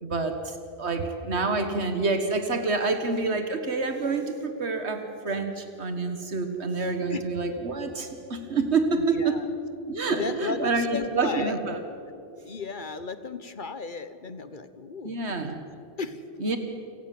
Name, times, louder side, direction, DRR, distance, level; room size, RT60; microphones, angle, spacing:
voice 1, 0.0-9.4 9.9-11.8 15.0-15.6 16.4-16.6, right 3 dB, 80° right, 7 dB, 1.8 m, -27 dB
voice 2, 8.9-9.5 10.2-11.6 12.4-16.6, left 4 dB, 50° left, 12 dB, 1.2 m, -35 dB
28.5 x 17.5 x 7.6 m, 2.7 s
omnidirectional pair, 1.1 m